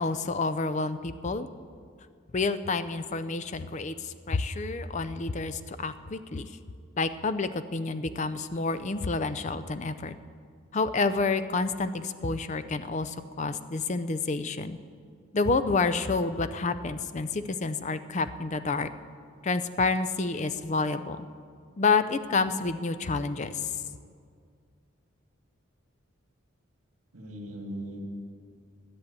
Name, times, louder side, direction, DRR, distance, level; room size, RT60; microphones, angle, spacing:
voice 1, 0.0-1.5 2.3-6.5 7.0-10.2 10.7-14.8 15.3-18.9 19.4-21.3 21.8-23.7, left 3 dB, 35° left, 12 dB, 0.5 m, -29 dB
voice 2, 27.1-28.0, right 1 dB, 80° right, 2 dB, 2.0 m, -39 dB
10.5 x 10.0 x 8.3 m, 2.2 s
head